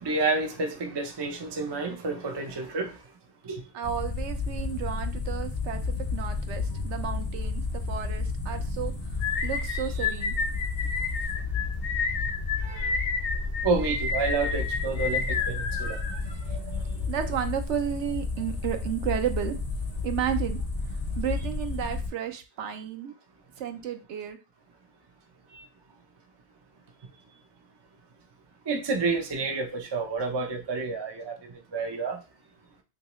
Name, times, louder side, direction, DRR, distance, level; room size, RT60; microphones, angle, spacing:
voice 1, 0.0-2.9 3.4-3.6 12.6-12.9 13.6-16.0 16.5-16.8 28.7-32.2, right 3 dB, 40° right, 0.4 m, -29 dB
voice 2, 3.7-10.4 16.8-19.6 20.0-20.6 20.9-23.1 23.6-24.4, right 9 dB, 70° right, 0.8 m, -33 dB
sound 1, 3.8-22.1, left 3 dB, 35° left, 0.6 m, -32 dB
sound 2, 9.2-16.6, left 5 dB, 70° left, 0.9 m, -31 dB
3.1 x 2.7 x 3.0 m
omnidirectional pair, 1.3 m